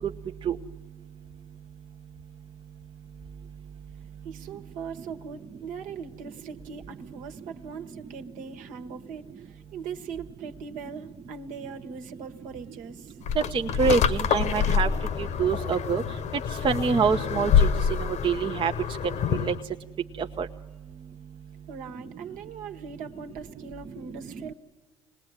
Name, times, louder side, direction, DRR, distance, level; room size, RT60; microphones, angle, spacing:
voice 1, 4.2-9.2 9.7-13.1 21.7-24.5, right 6 dB, 60° right, 6 dB, 1.5 m, -40 dB
sound 1, 13.3-19.6, left 8 dB, 50° left, 1.1 m, -26 dB
voice 2, 13.5-14.9 15.2-16.0 16.6-17.7 18.0-18.7 19.4-19.5 20.4-20.5, right 6 dB, 35° right, 5 dB, 0.9 m, -25 dB
26.5 x 19.5 x 9.8 m, 1.2 s
hypercardioid pair, 60°, 15 cm